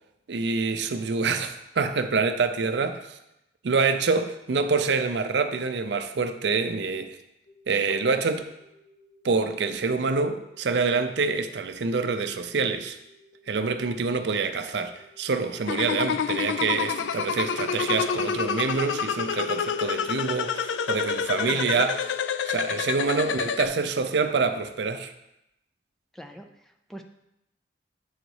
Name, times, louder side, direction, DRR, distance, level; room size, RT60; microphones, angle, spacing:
voice 1, 0.3-3.0 3.6-7.2 7.7-8.5 9.2-13.0 13.5-22.0 22.4-25.1, right 4 dB, 70° right, 0.5 m, -26 dB
sound 1, 7.5-24.7, left 1 dB, 60° left, 2.1 m, -58 dB
sound 2, 15.7-23.7, left 6 dB, 85° left, 0.3 m, -28 dB
voice 2, 21.5-21.8 26.1-27.0, equal, ahead, 0.3 m, -43 dB
8.1 x 4.0 x 4.7 m
head